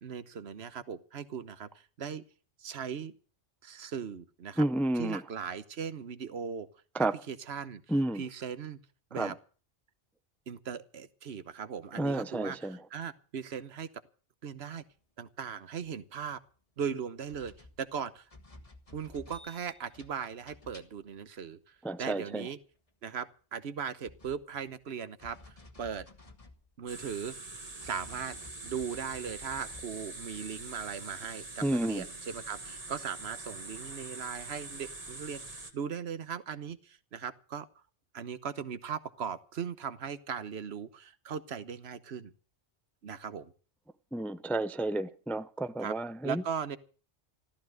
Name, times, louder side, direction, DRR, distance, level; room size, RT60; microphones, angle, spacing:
voice 1, 0.0-2.2 2.6-3.1 3.6-4.6 5.0-6.7 7.0-7.8 8.1-8.8 9.1-9.4 10.5-13.9 14.4-14.8 15.2-16.4 16.8-17.5 17.8-18.3 18.9-22.6 23.0-26.1 26.8-27.3 27.8-28.4 28.6-37.7 38.1-42.3 43.0-43.5 45.8-45.9 46.2-46.8, right 7 dB, 70° right, 1.2 m, -38 dB
voice 2, 4.6-5.2 6.9-7.2 7.9-8.2 9.1-9.3 12.0-12.8 21.8-22.5 31.6-32.0 44.1-46.4, right 1 dB, ahead, 0.4 m, -31 dB
sound 1, 17.3-21.2 21.9-22.0 23.8-24.9 25.2-27.3 27.8-29.9, left 2 dB, 30° left, 1.5 m, -54 dB
sound 2, 26.9-35.7, right 2 dB, 35° right, 1.9 m, -44 dB
14.5 x 14.0 x 6.3 m
omnidirectional pair, 1.1 m